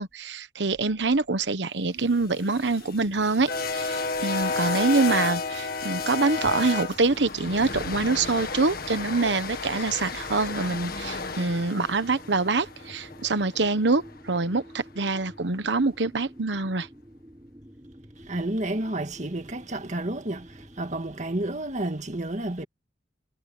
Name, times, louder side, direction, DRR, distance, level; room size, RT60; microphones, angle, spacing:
voice 1, 0.0-16.9, right 3 dB, 75° right, 1.1 m, -25 dB
sound 1, 2.0-21.5, equal, 20° right, 5.3 m, -49 dB
sound 2, 2.2-14.4, left 4 dB, 55° left, 1.8 m, -32 dB
voice 2, 18.3-20.5 20.8-22.6, right 1 dB, 40° right, 2.0 m, -30 dB
head